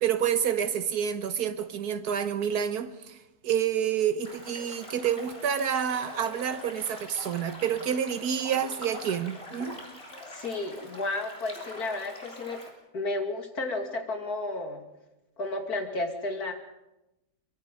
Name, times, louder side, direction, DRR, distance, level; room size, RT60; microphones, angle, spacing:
voice 1, 0.0-3.2 3.4-9.8, right 8 dB, 90° right, 1.6 m, -28 dB
sound 1, 4.2-12.7, left 1 dB, 40° left, 4.1 m, -44 dB
voice 2, 10.3-12.6 12.9-14.8 15.4-16.5, left 2 dB, 80° left, 3.0 m, -32 dB
24.5 x 23.0 x 5.3 m
omnidirectional pair, 1.6 m